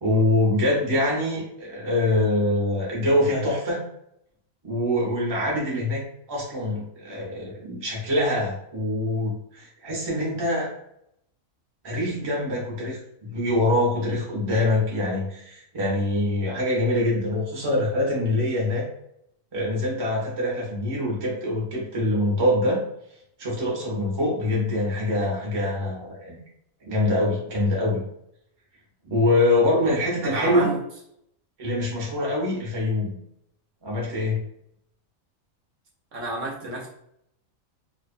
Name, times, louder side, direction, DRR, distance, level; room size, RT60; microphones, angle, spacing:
voice 1, 0.0-3.8 4.6-6.0 6.3-10.7 11.8-18.9 19.5-22.8 23.4-26.3 26.8-28.0 29.0-30.7 31.6-33.2 33.8-34.4, left 1 dB, 25° right, -3 dB, 0.5 m, -24 dB
voice 2, 30.2-30.8 36.1-36.9, right 2 dB, 70° right, -2 dB, 0.9 m, -30 dB
2.5 x 2.1 x 2.5 m, 0.73 s
omnidirectional pair, 1.4 m